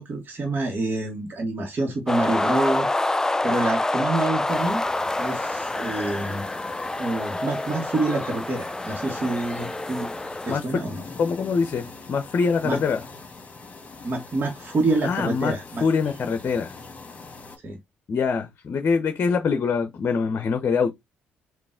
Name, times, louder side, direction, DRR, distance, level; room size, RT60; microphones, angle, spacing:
voice 1, 0.0-2.9 3.4-4.8 5.2-6.4 7.0-10.1 10.4-11.0 12.6-12.8 14.0-15.8 17.6-17.8, right 2 dB, 40° right, 1.3 m, -27 dB
sound 1, 2.1-10.6, left 2 dB, 10° left, 0.3 m, -27 dB
sound 2, 4.5-17.6, left 3 dB, 30° left, 1.9 m, -43 dB
voice 2, 10.5-10.9 11.2-13.0 15.0-16.8 18.1-20.9, left 5 dB, 50° left, 0.7 m, -24 dB
3.9 x 2.6 x 3.6 m
supercardioid pair, 60°, 5 cm